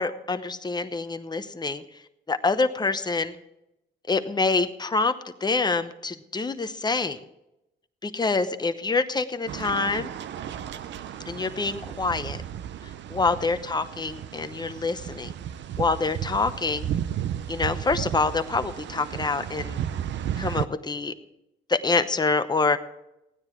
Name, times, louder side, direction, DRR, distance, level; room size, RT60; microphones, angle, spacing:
voice 1, 0.0-1.8 2.3-3.4 4.1-5.1 5.4-7.2 8.0-10.1 11.3-12.4 13.1-15.3 15.8-16.9 17.5-19.8 20.4-21.1 21.7-22.8, left 3 dB, 20° left, 10 dB, 0.9 m, -26 dB
sound 1, 9.5-20.7, right 10 dB, 65° right, 0.7 m, -34 dB
15.5 x 9.7 x 4.6 m, 0.88 s
cardioid pair, 90°, 20 cm